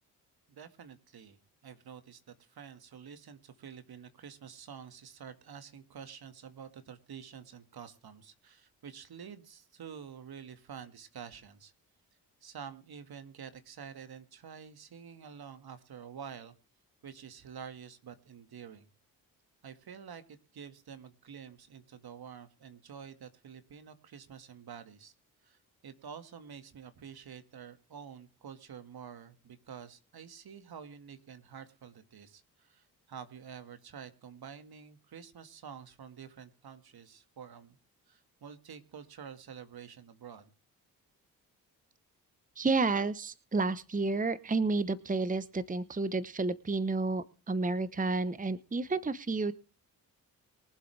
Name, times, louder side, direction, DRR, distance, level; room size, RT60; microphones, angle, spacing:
voice 1, 0.5-11.7 12.4-16.5 17.0-18.9 19.6-25.1 25.4-37.8 38.1-40.5, right 7 dB, 60° right, 10 dB, 2.0 m, -48 dB
voice 2, 42.6-49.5, right 3 dB, 20° right, 16 dB, 1.0 m, -31 dB
23.5 x 7.8 x 3.4 m, 0.34 s
hypercardioid pair, 45°, 43 cm